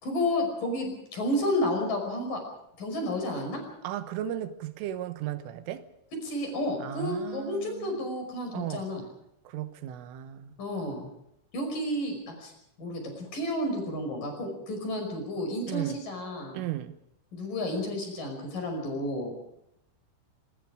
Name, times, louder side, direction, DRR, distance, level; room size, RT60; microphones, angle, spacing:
voice 1, 0.0-2.4 2.8-3.6 6.2-9.0 10.6-11.1 11.5-12.5 12.8-16.6 17.3-19.4, left 1 dB, 45° left, 6.8 m, -31 dB
voice 2, 3.8-5.9 6.8-8.1 8.5-8.8 9.5-10.6 15.7-16.0 16.5-17.0, right 12 dB, 85° right, 3.7 m, -35 dB
25.0 x 23.5 x 4.9 m
omnidirectional pair, 5.6 m